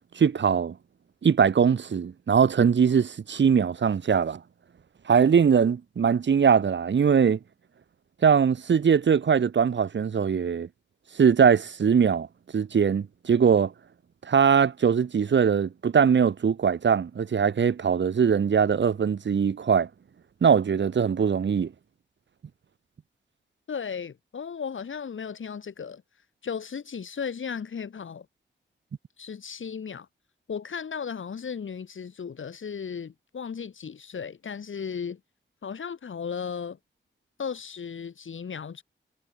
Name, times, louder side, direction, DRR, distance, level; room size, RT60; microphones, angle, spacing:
voice 1, 0.2-0.7 1.2-4.4 5.1-7.4 8.2-10.7 11.2-12.3 12.5-13.7 14.3-19.9 20.4-21.7, right 7 dB, 70° right, 1.4 m, -21 dB
voice 2, 23.7-26.0 26.4-28.3 29.2-30.1 30.5-35.2 35.6-36.8 37.4-38.8, left 6 dB, 90° left, 7.5 m, -35 dB
wide cardioid pair, 145°, 20 cm